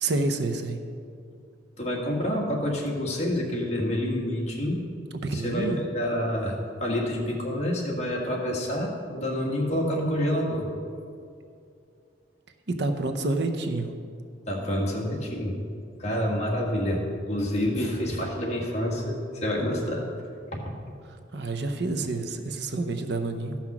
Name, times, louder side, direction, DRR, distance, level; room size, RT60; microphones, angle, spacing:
voice 1, 0.0-0.8 5.2-5.8 12.7-13.9 21.0-23.6, right 2 dB, 60° right, 6 dB, 0.7 m, -28 dB
voice 2, 1.8-4.8 5.3-10.7 14.5-15.6 16.0-20.0 20.5-20.6, equal, 35° left, -2 dB, 1.7 m, -28 dB
13.5 x 5.8 x 6.0 m, 2.4 s
head